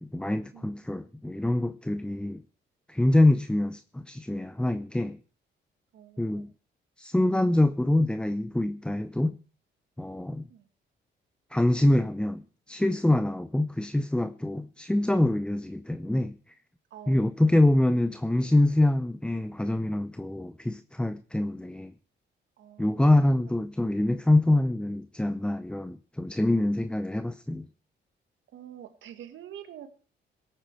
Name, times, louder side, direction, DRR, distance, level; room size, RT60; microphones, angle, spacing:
voice 1, 0.0-2.4 2.9-5.2 6.2-6.5 7.0-9.4 10.0-10.5 11.5-16.4 17.1-21.9 22.8-27.7, left 1 dB, 5° left, 0.6 m, -25 dB
voice 2, 0.5-1.0 5.9-6.4 10.5-10.6 16.9-17.3 22.6-23.5 28.5-29.9, right 10 dB, 75° right, 1.7 m, -47 dB
17.5 x 8.9 x 4.6 m
cardioid pair, 90°, 20 cm